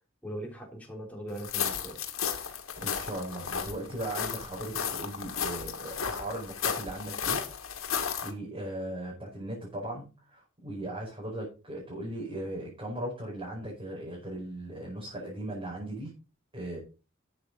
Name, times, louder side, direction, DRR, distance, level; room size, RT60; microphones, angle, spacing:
voice 1, 0.2-2.3, right 1 dB, 5° left, 3.5 m, -40 dB
sound 1, 1.4-8.3, left 7 dB, 80° left, 2.1 m, -34 dB
voice 2, 2.8-7.4 8.2-16.1 16.5-16.8, right 1 dB, 25° right, 5.1 m, -38 dB
12.5 x 7.8 x 4.0 m
head